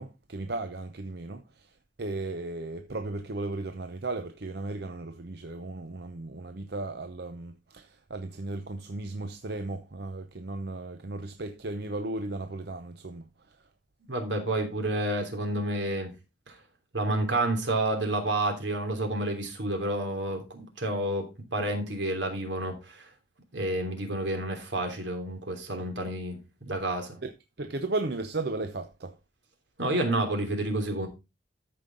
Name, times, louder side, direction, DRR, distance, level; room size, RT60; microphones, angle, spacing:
voice 1, 0.0-1.7 2.0-13.3 25.8-25.9 27.2-27.3 27.6-29.2, right 2 dB, 60° right, 0.8 m, -35 dB
voice 2, 14.1-16.1 16.5-16.6 16.9-23.0 23.5-27.2 29.8-31.1, right 1 dB, 80° right, 3.1 m, -30 dB
13.5 x 5.5 x 3.9 m
head